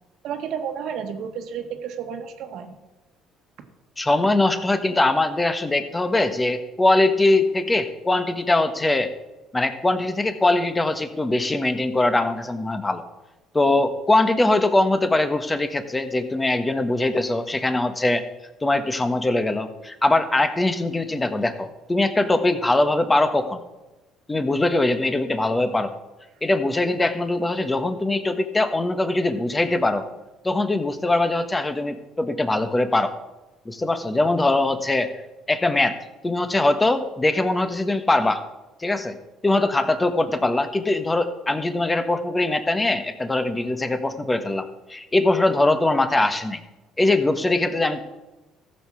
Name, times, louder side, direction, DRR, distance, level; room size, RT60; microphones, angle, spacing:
voice 1, 0.2-2.8, right 7 dB, 70° right, 6 dB, 1.5 m, -31 dB
voice 2, 4.0-9.1 9.5-13.0 13.5-18.2 18.6-23.6 24.3-25.9 26.4-30.1 30.4-33.1 33.6-35.2 35.5-36.0 36.2-38.4 38.8-39.1 39.4-46.6 47.0-48.0, left 2 dB, 15° left, 9 dB, 1.3 m, -22 dB
14.0 x 6.8 x 6.3 m, 1.1 s
supercardioid pair, 85°, 0 cm